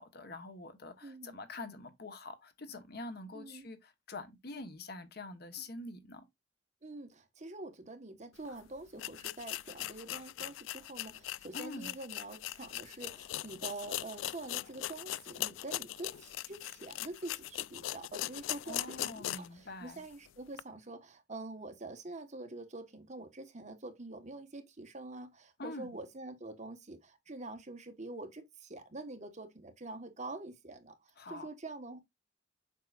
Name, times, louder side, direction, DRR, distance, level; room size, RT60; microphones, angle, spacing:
voice 1, 0.0-6.2 11.5-11.9 18.6-20.0 25.6-25.9 31.2-31.5, left 2 dB, 55° left, 1.2 m, -45 dB
voice 2, 1.0-1.4 3.3-3.7 6.8-32.0, right 2 dB, 40° right, 1.3 m, -46 dB
sound 1, 8.4-8.5 9.0-19.6 20.0-20.1 20.5-20.6, left 14 dB, 90° left, 0.3 m, -40 dB
7.4 x 5.7 x 2.4 m
head